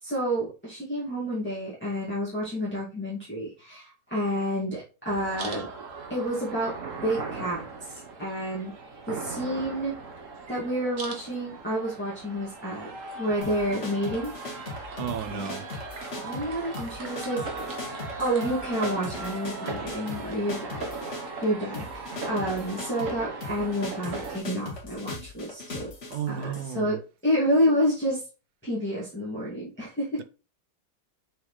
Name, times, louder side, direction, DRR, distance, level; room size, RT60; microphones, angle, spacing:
voice 1, 0.0-5.7 6.1-6.7 7.0-8.7 9.1-9.9 10.5-12.9 13.2-14.3 14.8-15.0 15.3-15.5 16.2-17.5 18.2-25.9 26.3-26.4 26.7-27.0 27.2-28.2 28.6-30.2, equal, 5° left, 2.0 m, -29 dB
sound 1, 5.1-24.4, right 3 dB, 50° right, 1.4 m, -38 dB
sound 2, 13.4-26.7, left 3 dB, 45° left, 1.9 m, -39 dB
voice 2, 15.0-15.7 26.1-27.0, right 9 dB, 70° right, 1.1 m, -33 dB
6.2 x 4.9 x 3.2 m
omnidirectional pair, 1.8 m